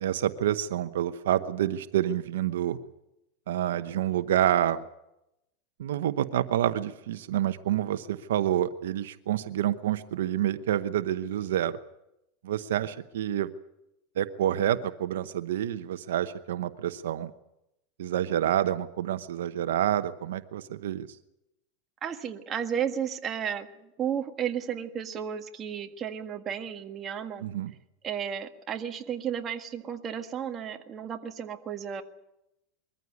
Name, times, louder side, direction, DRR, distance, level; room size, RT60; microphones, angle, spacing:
voice 1, 0.0-2.8 3.5-4.8 5.8-11.8 12.4-13.5 14.2-17.3 18.0-21.1 27.4-27.7, right 11 dB, 90° right, 12 dB, 0.9 m, -28 dB
voice 2, 22.0-23.7 24.0-27.5 28.0-32.0, right 8 dB, 30° right, 5 dB, 1.7 m, -33 dB
22.0 x 14.5 x 9.6 m, 0.88 s
supercardioid pair, 130°, 0 cm